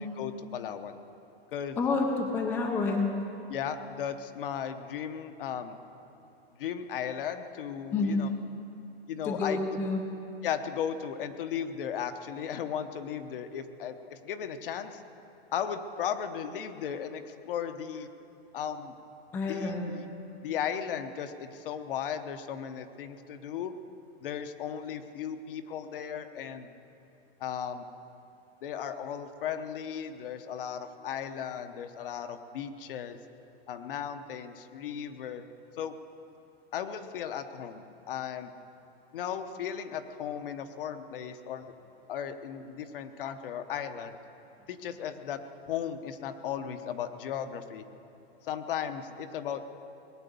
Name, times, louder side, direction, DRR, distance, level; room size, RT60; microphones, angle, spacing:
voice 1, 0.2-1.0 1.5-1.8 3.5-5.8 6.6-8.3 9.1-9.6 10.4-15.0 15.5-18.1 18.5-18.9 19.5-20.1 20.4-23.7 24.2-26.7 27.4-27.9 28.6-33.2 33.7-35.4 35.8-35.9 36.7-38.5 39.1-41.7 42.1-44.2 44.7-45.4 45.7-47.8 48.4-49.7, left 8 dB, 60° left, 9 dB, 0.9 m, -36 dB
voice 2, 1.8-3.1 7.9-8.2 9.2-10.0 19.3-19.9, left 3 dB, 5° left, 1 dB, 0.4 m, -28 dB
19.5 x 9.1 x 6.8 m, 2.8 s
supercardioid pair, 165°, 31 cm